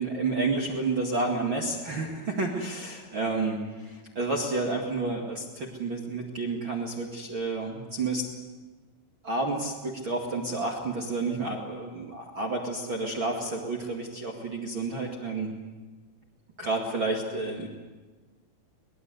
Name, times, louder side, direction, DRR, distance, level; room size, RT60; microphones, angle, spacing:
voice 1, 0.0-8.2 9.2-15.5 16.6-17.7, right 3 dB, 75° right, 0 dB, 1.1 m, -30 dB
24.0 x 20.0 x 8.0 m, 1.3 s
omnidirectional pair, 6.0 m